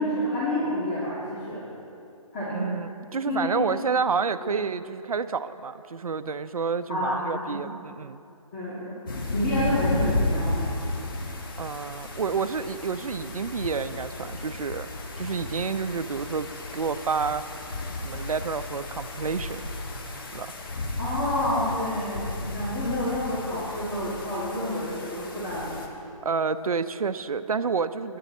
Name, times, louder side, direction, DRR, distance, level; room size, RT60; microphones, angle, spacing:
voice 1, 0.0-1.7 2.3-2.7 3.2-3.7 4.4-4.5 6.9-7.6 8.5-10.7 21.0-25.7, left 1 dB, 20° left, -9 dB, 2.5 m, -29 dB
voice 2, 2.5-8.2 11.6-14.9 15.2-17.4 18.0-19.6 20.3-20.5 26.2-28.2, right 5 dB, 80° right, 12 dB, 0.7 m, -29 dB
sound 1, 9.1-25.9, left 2 dB, 40° left, 1.5 m, -33 dB
21.5 x 9.4 x 4.3 m, 2.6 s
hypercardioid pair, 165°, 18 cm